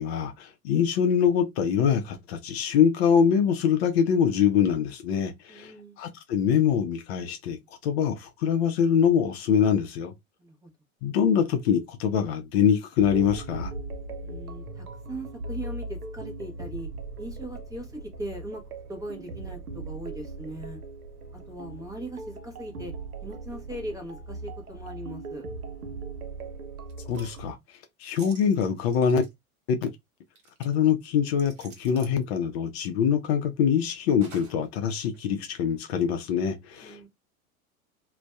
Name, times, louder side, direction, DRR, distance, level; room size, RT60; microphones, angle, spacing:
voice 1, 0.0-10.1 11.0-13.7 27.0-27.6 28.0-29.2 29.7-29.9 30.6-37.1, left 7 dB, 45° left, 0.6 m, -24 dB
voice 2, 5.5-6.0 10.4-10.7 14.2-16.9 17.2-18.6 18.9-20.8 21.5-22.9 23.2-25.4 36.8-37.1, right 1 dB, 10° right, 0.6 m, -39 dB
sound 1, 13.0-27.5, right 2 dB, 90° right, 0.6 m, -39 dB
sound 2, 26.9-27.4 28.2-29.3 30.4-30.7 31.4-32.2 34.2-34.7 35.1-35.2, right 4 dB, 55° right, 1.2 m, -50 dB
2.5 x 2.2 x 2.2 m
figure-of-eight pair, 90°, 43 cm